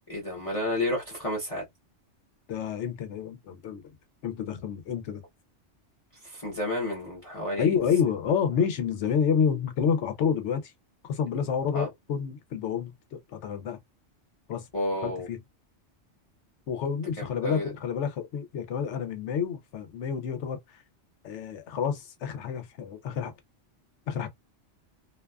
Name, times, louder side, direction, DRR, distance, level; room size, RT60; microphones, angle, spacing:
voice 1, 0.1-1.6 6.2-7.7 11.7-11.9 14.7-15.3 17.2-17.7, left 1 dB, 30° left, 0.8 m, -31 dB
voice 2, 2.5-3.8 4.2-5.2 7.6-10.7 11.0-13.8 14.5-14.7 15.0-15.4 16.7-20.8 21.2-23.3 24.1-24.3, left 7 dB, 75° left, 0.9 m, -29 dB
2.5 x 2.2 x 2.2 m
omnidirectional pair, 1.2 m